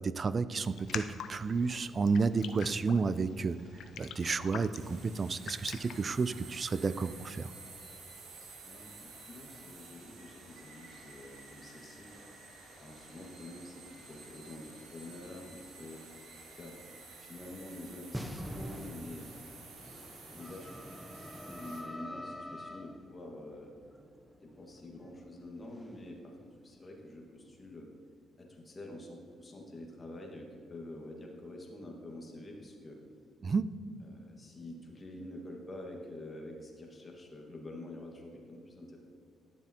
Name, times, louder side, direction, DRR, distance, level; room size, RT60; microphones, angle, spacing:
voice 1, 0.0-3.6 4.0-7.5 33.4-33.7, right 4 dB, 40° right, 15 dB, 0.3 m, -31 dB
Raindrop, 0.6-6.9, left 8 dB, 75° left, 0.4 m, -46 dB
sound 1, 4.7-21.8, right 3 dB, 85° right, 1.5 m, -52 dB
voice 2, 8.6-12.1 12.8-16.0 16.5-16.8 17.2-19.5 20.3-20.7 21.3-23.7 24.4-27.9 28.4-33.0 34.0-39.0, left 1 dB, 30° left, 0 dB, 1.7 m, -47 dB
sound 2, 18.1-27.7, left 1 dB, ahead, 0.7 m, -46 dB
11.0 x 7.0 x 2.9 m, 2.3 s
cardioid pair, 75°, 0 cm